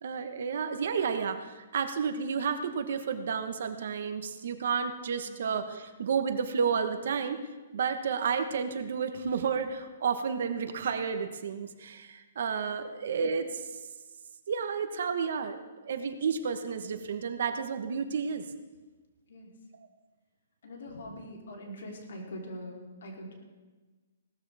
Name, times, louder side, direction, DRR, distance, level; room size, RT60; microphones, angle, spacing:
voice 1, 0.0-7.4 7.7-13.6 14.5-18.4 19.8-19.9, right 6 dB, 60° right, 8 dB, 1.2 m, -31 dB
voice 2, 20.6-23.4, equal, 65° left, 0 dB, 3.4 m, -43 dB
18.0 x 13.5 x 3.5 m, 1.3 s
hypercardioid pair, 165°, 0 cm